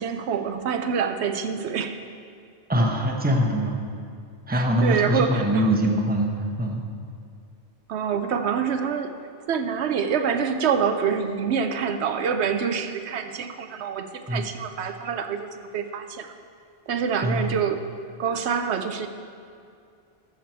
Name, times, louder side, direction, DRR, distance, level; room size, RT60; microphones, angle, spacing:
voice 1, 0.0-2.0 4.5-5.7 7.9-9.1 9.5-16.3 16.9-17.8 18.2-19.1, right 6 dB, 85° right, 7 dB, 0.9 m, -26 dB
voice 2, 2.7-3.8 4.5-6.3 6.6-6.8 14.3-14.5 17.2-17.6, equal, 10° right, 1 dB, 0.9 m, -23 dB
13.5 x 6.5 x 4.4 m, 2.4 s
omnidirectional pair, 1.1 m